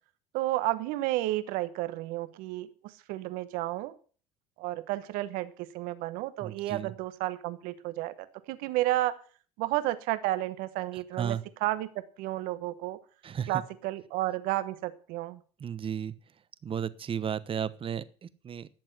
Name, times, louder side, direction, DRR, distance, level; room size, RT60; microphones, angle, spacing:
voice 1, 0.3-2.7 3.1-3.9 4.6-8.1 8.5-9.2 9.6-11.9 12.2-13.0 13.5-15.4, right 16 dB, 75° right, 13 dB, 1.1 m, -31 dB
voice 2, 6.4-6.9 11.1-11.4 13.2-13.6 15.6-16.1 16.6-18.7, right 8 dB, 40° right, 15 dB, 1.1 m, -34 dB
12.0 x 7.7 x 7.9 m, 0.41 s
supercardioid pair, 75°, 15 cm